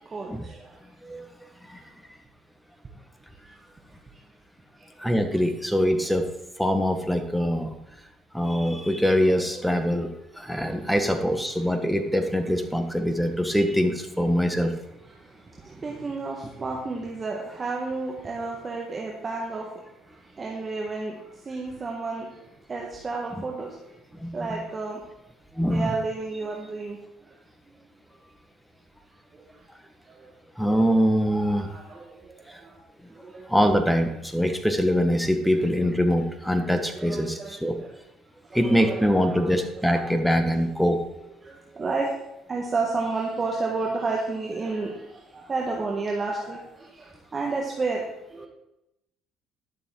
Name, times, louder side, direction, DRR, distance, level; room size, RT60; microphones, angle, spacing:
voice 1, 5.0-6.3 6.6-7.7 8.3-14.7 24.2-24.6 25.6-25.9 30.6-31.7 32.5-32.6 33.5-37.8 38.5-41.0, equal, ahead, 6 dB, 1.4 m, -23 dB
voice 2, 15.8-19.7 20.4-21.1 21.5-22.2 22.7-23.7 24.3-25.0 25.6-27.0 31.5-32.0 33.2-33.4 36.7-37.6 38.5-39.5 39.9-40.3 41.7-42.1 42.5-45.0 45.3-46.6 47.3-48.0 48.3-48.5, right 3 dB, 30° right, -1 dB, 1.5 m, -30 dB
12.0 x 7.0 x 3.9 m, 0.89 s
supercardioid pair, 85°, 0 cm